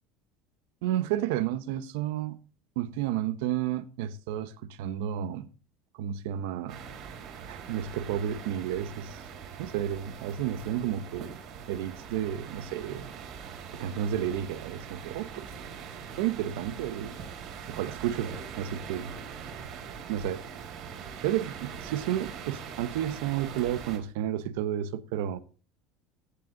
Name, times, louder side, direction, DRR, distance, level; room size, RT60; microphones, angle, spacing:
voice 1, 0.8-2.4 2.8-5.5 5.9-6.8 7.5-9.2 9.6-11.4 11.7-13.1 13.7-15.4 16.2-17.2 17.7-19.1 20.1-20.4 21.2-25.4, right 11 dB, 85° right, 1.0 m, -31 dB
sound 1, 6.7-24.0, right 7 dB, 50° right, 4.1 m, -42 dB
15.0 x 8.1 x 3.9 m
cardioid pair, 150°, 0 cm